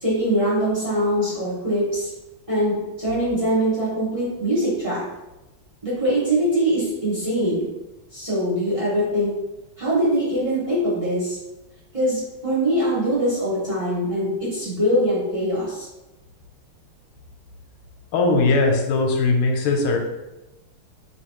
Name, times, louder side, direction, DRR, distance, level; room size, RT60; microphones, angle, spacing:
voice 1, 0.0-2.1 2.5-5.0 5.8-7.7 8.1-9.3 9.8-11.4 11.9-15.8, equal, 25° right, -10 dB, 0.8 m, -22 dB
voice 2, 18.1-20.0, left 3 dB, 85° left, 2 dB, 1.5 m, -19 dB
3.2 x 3.0 x 2.9 m, 0.99 s
omnidirectional pair, 2.4 m